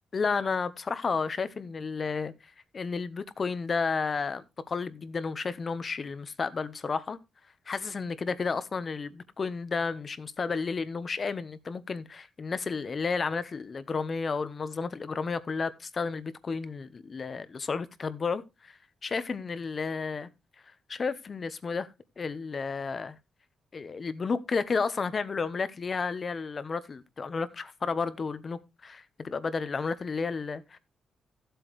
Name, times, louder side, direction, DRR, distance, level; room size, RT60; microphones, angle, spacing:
voice 1, 0.1-7.2 7.7-20.3 20.9-21.9 22.2-23.2 23.7-30.8, left 4 dB, 35° left, 0.8 m, -32 dB
15.5 x 7.9 x 3.1 m
wide cardioid pair, 150°, 0 cm